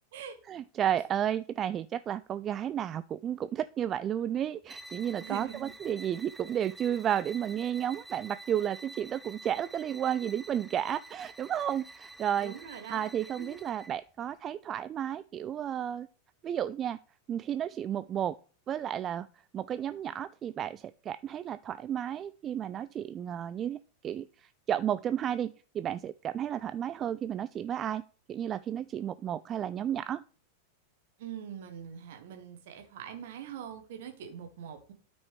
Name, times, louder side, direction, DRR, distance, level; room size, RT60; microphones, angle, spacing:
voice 1, 0.5-12.5 12.9-16.1 16.4-17.0 17.3-18.4 18.7-19.3 19.5-28.0 28.3-30.2, right 10 dB, 30° right, 14 dB, 0.3 m, -32 dB
sound 1, 4.6-14.0, right 2 dB, 5° right, 0.7 m, -49 dB
voice 2, 5.2-5.7 12.4-13.1 13.4-13.6 31.2-34.9, right 9 dB, 55° right, 5 dB, 1.6 m, -43 dB
12.5 x 5.2 x 3.4 m, 0.40 s
figure-of-eight pair, 90°, 0 cm